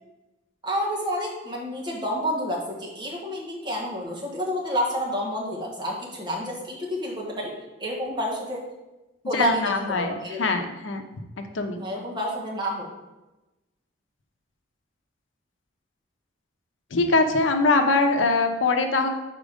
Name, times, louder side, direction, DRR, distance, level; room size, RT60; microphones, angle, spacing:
voice 1, 0.6-8.6 9.2-10.6 11.7-12.9, equal, 25° right, -3 dB, 1.3 m, -29 dB
voice 2, 9.3-11.0 11.5-11.8 16.9-19.1, left 3 dB, 85° left, 6 dB, 0.7 m, -22 dB
5.1 x 4.5 x 5.0 m, 1.0 s
head